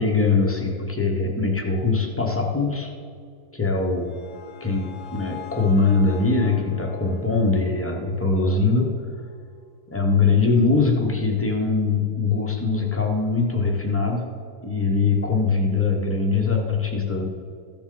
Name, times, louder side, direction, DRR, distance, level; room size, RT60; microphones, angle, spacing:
voice 1, 0.0-2.9 3.5-4.1 4.6-9.0 9.9-14.3 14.6-17.2, left 4 dB, 15° left, 0 dB, 0.5 m, -22 dB
sound 1, 3.7-8.9, left 10 dB, 90° left, 1.8 m, -44 dB
14.5 x 7.0 x 3.9 m, 2.3 s
omnidirectional pair, 2.2 m